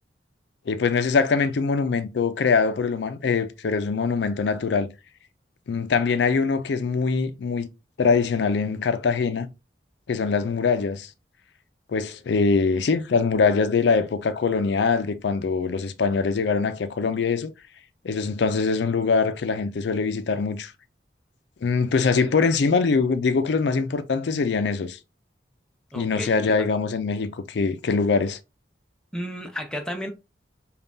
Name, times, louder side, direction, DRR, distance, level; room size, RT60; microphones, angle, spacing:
voice 1, 0.7-4.9 5.7-7.7 8.0-9.5 10.1-11.1 11.9-17.5 18.0-20.7 21.6-25.0 25.9-28.4, left 4 dB, 75° left, 0.4 m, -23 dB
voice 2, 25.9-26.7 29.1-30.1, equal, 5° left, 0.5 m, -32 dB
5.2 x 2.3 x 2.6 m
head